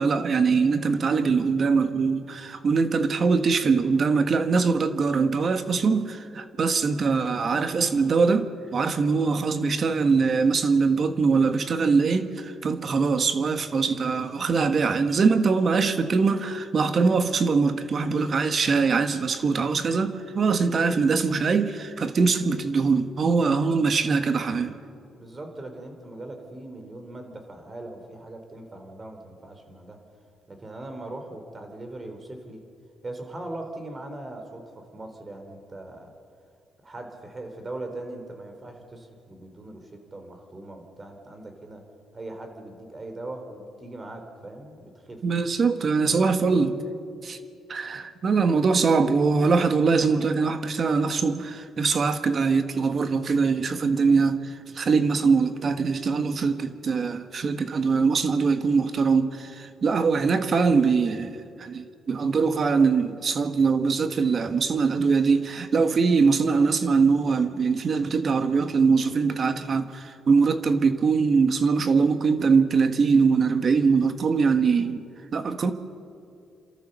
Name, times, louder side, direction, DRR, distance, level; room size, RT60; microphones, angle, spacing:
voice 1, 0.0-24.7 45.2-46.7 47.2-47.4 47.7-75.0 75.3-75.7, right 5 dB, 45° right, 1.5 m, -22 dB
voice 2, 25.2-30.0 30.5-32.6 33.0-36.1 36.8-41.8 42.1-45.2 46.1-46.5, right 2 dB, 30° right, 3.8 m, -40 dB
29.0 x 13.5 x 6.8 m
cardioid pair, 90°, 0 cm